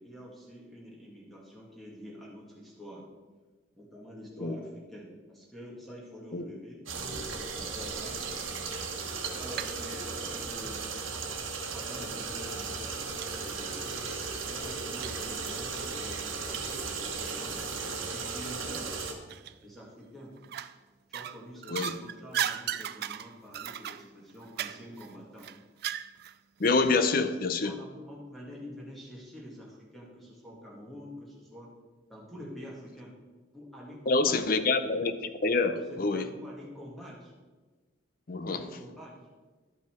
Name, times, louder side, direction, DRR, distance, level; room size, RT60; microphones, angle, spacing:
voice 1, 0.0-3.0 3.7-6.8 7.1-8.2 9.4-10.8 11.7-14.0 14.4-17.6 18.1-18.9 19.6-20.3 21.1-25.5 27.6-31.7 32.1-33.1 33.5-34.4 35.8-37.3 38.4-39.2, equal, ahead, -4 dB, 1.9 m, -46 dB
sound 1, 6.9-19.1, right 4 dB, 80° right, 1.2 m, -36 dB
sound 2, 9.0-9.8 10.1-11.2 11.9-12.0 12.5-12.6 13.2-13.3 13.7-13.8 15.0-15.3 15.8-18.0 18.4-18.6 19.3-19.9 20.4-20.8 21.1-26.4 26.6-26.7, right 10 dB, 50° right, 0.3 m, -37 dB
voice 2, 26.6-27.7 34.1-35.1 35.4-36.3 38.3-38.6, left 3 dB, 45° left, 10 dB, 0.6 m, -26 dB
11.5 x 5.6 x 4.5 m, 1.3 s
head